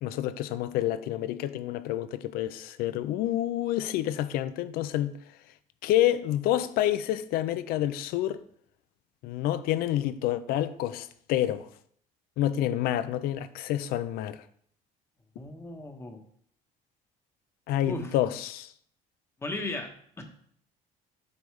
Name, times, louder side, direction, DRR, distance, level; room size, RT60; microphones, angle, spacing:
voice 1, 0.0-5.1 5.8-8.4 9.2-11.7 12.4-14.4 17.7-18.7, left 12 dB, 75° left, 0.5 m, -28 dB
voice 2, 15.4-16.2 17.9-18.1 19.4-19.9 20.2-20.3, left 2 dB, 15° left, 1.1 m, -35 dB
8.2 x 5.3 x 3.2 m
cardioid pair, 130°, 15 cm